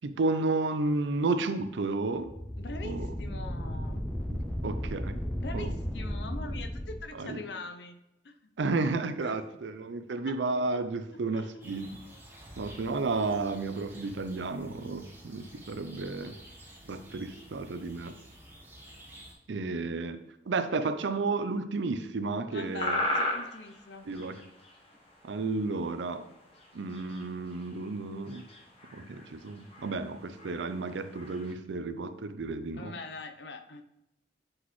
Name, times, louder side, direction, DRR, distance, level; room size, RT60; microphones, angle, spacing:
voice 1, 0.0-2.3 2.8-3.1 4.3-5.2 5.5-5.7 7.2-7.4 8.6-11.9 12.6-16.3 16.9-18.1 19.5-20.2 20.5-23.0 24.1-24.4 25.2-26.2 26.7-28.4 28.9-32.9, right 3 dB, 80° right, 10 dB, 0.5 m, -32 dB
sound 1, 2.2-7.0, equal, 5° left, 0.5 m, -35 dB
voice 2, 2.6-4.0 5.4-8.0 8.2-8.5 9.2-9.4 11.3-11.7 22.5-24.1 32.7-33.8, left 3 dB, 65° left, 7 dB, 0.6 m, -43 dB
sound 2, 11.6-19.3, equal, 10° right, 1.2 m, -51 dB
sound 3, 22.7-25.9 26.2-26.3 26.5-31.5, left 1 dB, 35° left, 1.1 m, -36 dB
7.6 x 4.0 x 3.1 m, 0.89 s
head